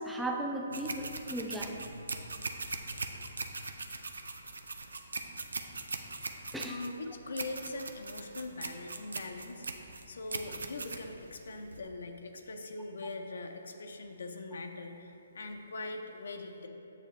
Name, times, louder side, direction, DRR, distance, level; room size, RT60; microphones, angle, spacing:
voice 1, 0.0-1.8 6.5-6.8, right 1 dB, 5° right, 0 dB, 0.4 m, -36 dB
sound 1, 0.7-11.8, right 3 dB, 80° right, 0.5 m, -40 dB
voice 2, 6.7-16.7, left 2 dB, 75° left, 4 dB, 0.5 m, -42 dB
7.3 x 6.6 x 3.1 m, 2.9 s
hypercardioid pair, 140°, 0 cm